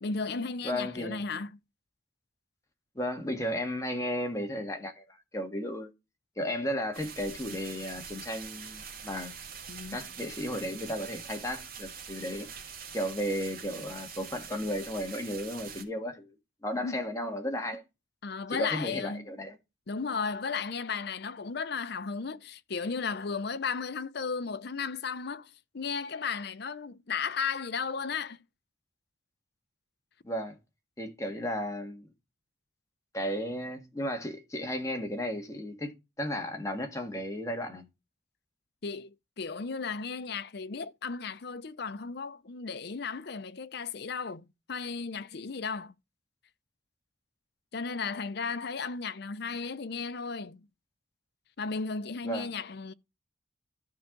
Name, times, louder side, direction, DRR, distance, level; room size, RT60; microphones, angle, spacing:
voice 1, 0.0-1.6 9.7-10.0 16.8-17.0 18.2-19.3 19.9-28.4 38.8-45.9 47.7-50.7 51.6-52.9, left 5 dB, 55° left, 0.6 m, -35 dB
voice 2, 0.6-1.2 3.0-5.9 6.4-9.3 9.9-12.5 12.9-16.4 16.6-17.8 18.5-19.6 30.2-30.6 31.0-32.1 33.1-35.9 36.2-37.8 52.2-52.5, equal, 15° left, 1.9 m, -34 dB
sound 1, 6.9-15.8, right 6 dB, 50° right, 3.2 m, -44 dB
13.0 x 5.6 x 3.9 m
head